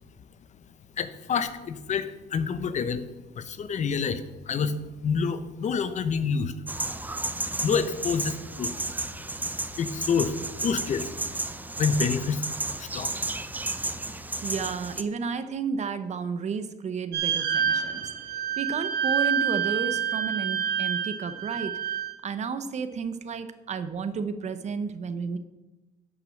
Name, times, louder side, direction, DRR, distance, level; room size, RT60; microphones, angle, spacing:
voice 1, 1.0-3.1 3.3-6.5 7.6-8.7 9.8-10.4 10.6-11.1 11.8-12.4 12.8-13.1, left 6 dB, 45° left, 12 dB, 0.8 m, -28 dB
sound 1, 6.7-15.0, right 2 dB, 10° right, 0.6 m, -33 dB
voice 2, 14.4-18.1 18.6-21.7 22.2-25.4, right 5 dB, 40° right, 11 dB, 0.9 m, -32 dB
sound 2, 17.1-22.1, right 8 dB, 85° right, 1.8 m, -27 dB
10.5 x 6.1 x 6.5 m, 1.0 s
cardioid pair, 110°, 17 cm